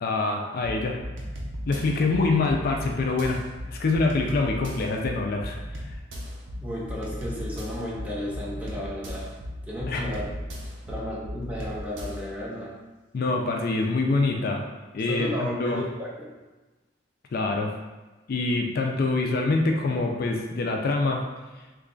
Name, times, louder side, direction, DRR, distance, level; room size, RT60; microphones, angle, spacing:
voice 1, 0.0-1.0 1.7-3.4 3.7-5.6 9.9-10.0 13.1-14.7 14.9-15.8 17.3-17.7 18.3-21.2, left 3 dB, 50° left, 2 dB, 0.3 m, -25 dB
sound 1, 0.6-12.3, equal, 80° right, 0.6 m, -37 dB
voice 2, 6.6-9.3 9.7-10.3 10.9-12.7 15.1-16.3, left 1 dB, 5° right, -5 dB, 0.5 m, -33 dB
3.1 x 2.3 x 3.7 m, 1.2 s
head